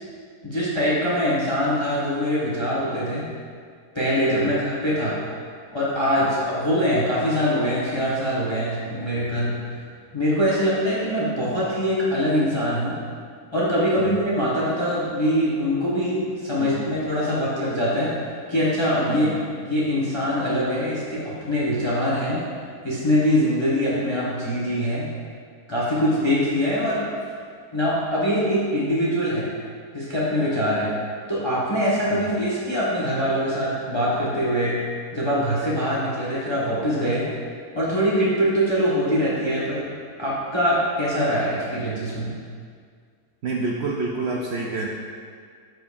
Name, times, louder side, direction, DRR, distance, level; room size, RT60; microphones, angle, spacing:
voice 1, 0.4-3.3 3.9-5.2 5.7-9.5 10.1-13.0 13.5-18.1 18.5-19.3 19.6-22.4 22.8-25.1 25.7-27.0 27.7-29.5 29.9-30.9 31.3-34.8 35.1-37.2 37.7-39.8 40.2-42.3, equal, 20° left, -7 dB, 1.0 m, -23 dB
voice 2, 14.0-14.3 16.6-16.9 19.1-19.4 32.1-32.3 43.4-44.9, right 3 dB, 65° right, -2 dB, 0.6 m, -29 dB
12.5 x 4.6 x 2.5 m, 2.1 s
omnidirectional pair, 1.6 m